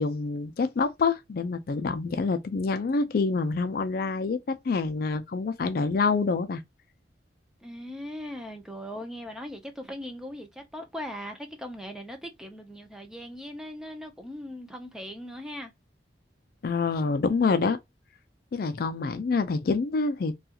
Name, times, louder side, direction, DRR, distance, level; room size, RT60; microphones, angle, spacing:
voice 1, 0.0-6.6 16.6-17.8 18.5-20.3, left 4 dB, 55° left, 0.4 m, -26 dB
voice 2, 7.6-15.7, equal, 5° right, 0.5 m, -39 dB
2.3 x 2.3 x 2.8 m
head